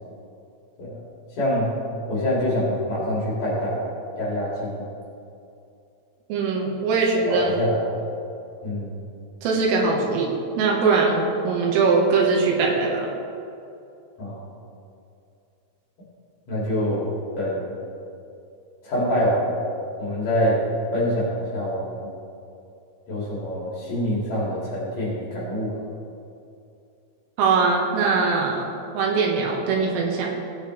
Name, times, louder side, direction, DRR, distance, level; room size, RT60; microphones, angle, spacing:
voice 1, 1.4-1.7 2.1-3.8 4.2-4.8 7.3-7.8 8.6-9.0 14.2-14.4 16.5-17.7 18.8-19.5 20.0-20.6 20.9-22.1 23.1-25.8, equal, 45° left, -7 dB, 3.5 m, -25 dB
voice 2, 6.3-7.6 9.4-13.1 27.4-28.7 28.9-30.3, right 4 dB, 80° right, -1 dB, 3.9 m, -21 dB
17.5 x 8.8 x 3.3 m, 2.6 s
omnidirectional pair, 6.0 m